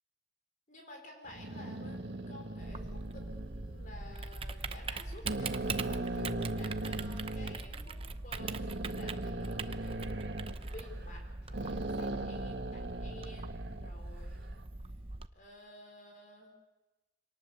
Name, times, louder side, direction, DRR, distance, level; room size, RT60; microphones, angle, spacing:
voice 1, 0.7-10.0 10.6-14.6 15.3-16.5, left 1 dB, 45° left, 2 dB, 4.4 m, -52 dB
sound 1, 1.3-4.2 4.7-4.9 5.3-7.6 8.4-11.2 11.5-13.9, right 2 dB, 85° right, 1.6 m, -39 dB
Typing, 2.6-15.3, right 3 dB, 30° right, 0.7 m, -41 dB
26.0 x 19.0 x 7.1 m, 1.1 s
head